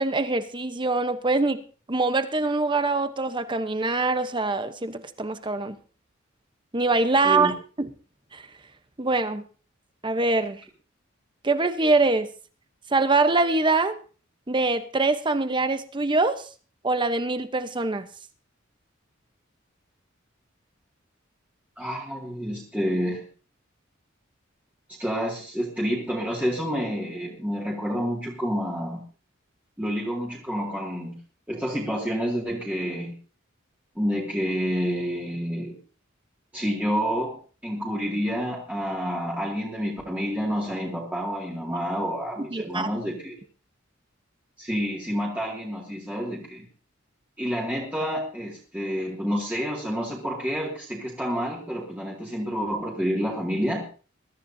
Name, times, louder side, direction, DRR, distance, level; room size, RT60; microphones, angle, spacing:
voice 1, 0.0-1.6 1.9-5.8 6.7-7.9 8.3-8.4 9.0-9.4 10.0-10.6 11.4-12.3 12.9-14.0 14.5-16.4 16.8-18.1 42.5-42.9, right 3 dB, 25° right, 10 dB, 0.9 m, -24 dB
voice 2, 21.8-23.3 24.9-29.0 29.8-31.2 31.5-33.2 34.0-35.8 36.5-43.3 44.6-46.7 47.4-53.9, equal, 10° right, -4 dB, 2.3 m, -29 dB
21.5 x 13.0 x 2.7 m, 0.37 s
head